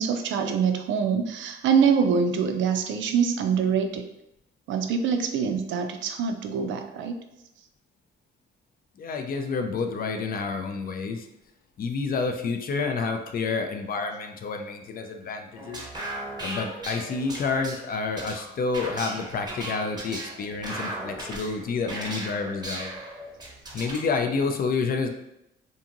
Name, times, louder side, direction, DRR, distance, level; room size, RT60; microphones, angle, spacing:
voice 1, 0.0-4.1 4.7-7.2, right 6 dB, 75° right, 6 dB, 0.4 m, -24 dB
voice 2, 9.0-11.3 11.8-15.8 16.4-22.9 23.7-25.1, left 4 dB, 45° left, 5 dB, 0.4 m, -29 dB
sound 1, 15.6-24.1, right 1 dB, 20° right, 0.8 m, -37 dB
2.8 x 2.6 x 2.5 m, 0.84 s
cardioid pair, 90°, 20 cm